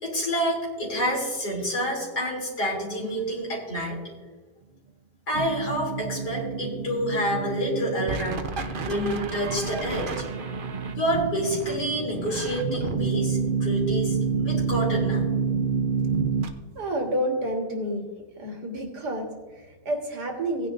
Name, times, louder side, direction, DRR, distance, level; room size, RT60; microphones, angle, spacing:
voice 1, 0.0-4.0 5.3-8.6 8.8-10.1 10.9-15.3, equal, 80° left, -3 dB, 3.4 m, -28 dB
sound 1, 5.3-16.5, right 5 dB, 55° right, 0.5 m, -28 dB
voice 2, 16.8-18.0 18.4-20.7, right 1 dB, 80° right, 2 dB, 2.1 m, -29 dB
16.5 x 9.5 x 2.5 m, 1.3 s
omnidirectional pair, 1.7 m